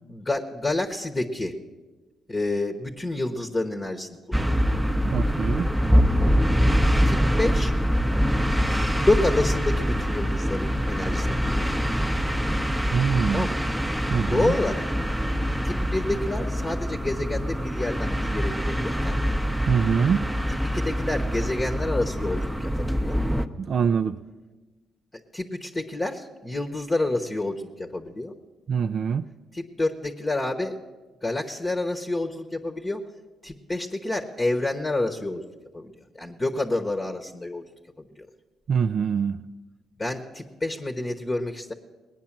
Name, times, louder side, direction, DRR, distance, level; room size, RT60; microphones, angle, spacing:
voice 1, 0.1-1.5 2.3-4.6 7.0-7.7 8.9-12.1 13.3-13.6 14.3-14.8 15.6-19.2 20.7-23.2 25.3-28.3 29.5-30.8 31.2-33.0 33.4-35.4 35.7-37.6 38.2-38.3 40.0-41.7, left 2 dB, 20° left, 3 dB, 1.0 m, -28 dB
sound 1, 4.3-23.5, equal, 5° right, 0.8 m, -24 dB
voice 2, 5.0-5.7 12.9-13.5 14.1-14.5 19.7-20.3 23.6-24.2 28.7-29.2 38.7-39.4, right 6 dB, 55° right, 8 dB, 0.4 m, -24 dB
19.5 x 9.4 x 7.3 m, 1.3 s
cardioid pair, 90°, 0 cm